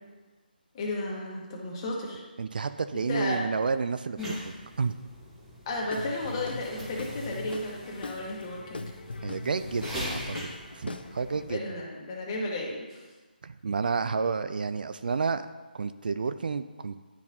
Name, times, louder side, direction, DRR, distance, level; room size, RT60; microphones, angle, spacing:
voice 1, 0.7-2.2 3.1-3.4 5.7-8.9 11.5-13.0, left 2 dB, 25° left, -2 dB, 1.3 m, -33 dB
voice 2, 2.4-5.0 9.2-10.4 10.7-11.6 13.4-15.5 15.7-17.0, right 5 dB, 60° right, 11 dB, 0.3 m, -30 dB
sound 1, 4.2-11.6, equal, 5° right, 1.2 m, -42 dB
Guitar / Drum, 5.9-11.4, left 3 dB, 75° left, 0.5 m, -40 dB
10.0 x 4.0 x 2.8 m, 1.3 s
figure-of-eight pair, 155°, 5 cm